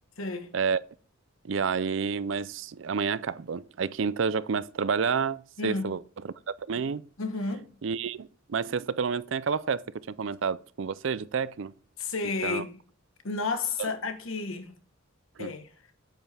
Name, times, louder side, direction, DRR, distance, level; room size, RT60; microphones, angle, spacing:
voice 1, 0.2-0.5 5.6-5.9 7.2-7.7 12.0-12.7 13.2-14.7 15.4-15.7, left 4 dB, 85° left, 1.3 m, -32 dB
voice 2, 1.4-6.0 6.7-7.0 7.8-11.7 12.4-12.6 13.8-13.9 15.4-15.6, right 6 dB, 65° right, 0.5 m, -29 dB
8.9 x 7.9 x 3.4 m
head